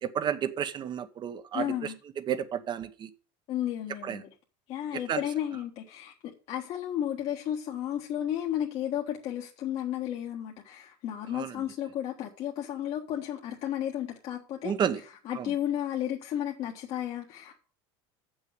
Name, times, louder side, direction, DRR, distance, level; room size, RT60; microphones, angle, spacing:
voice 1, 0.0-3.1 4.0-4.2 5.1-5.2 11.3-11.5 14.6-15.0 15.3-15.5, right 8 dB, 35° right, 1.0 m, -31 dB
voice 2, 1.5-1.9 3.5-4.3 4.7-14.7 15.2-17.6, left 11 dB, 50° left, 1.4 m, -33 dB
7.4 x 6.3 x 7.8 m
supercardioid pair, 120°, 14 cm